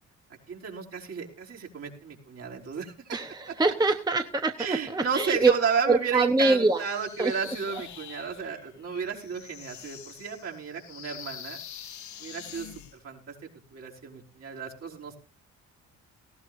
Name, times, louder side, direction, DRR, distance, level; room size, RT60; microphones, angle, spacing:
voice 1, 0.5-3.2 3.5-3.6 4.6-11.6 12.2-15.2, right 6 dB, 55° right, -2 dB, 5.1 m, -33 dB
voice 2, 3.1-5.5 5.9-6.8 7.2-7.3, right 3 dB, 15° right, 6 dB, 1.0 m, -24 dB
sound 1, 6.6-13.0, left 9 dB, 70° left, 1.5 m, -45 dB
18.5 x 16.0 x 2.6 m, 0.33 s
cardioid pair, 90°, 30 cm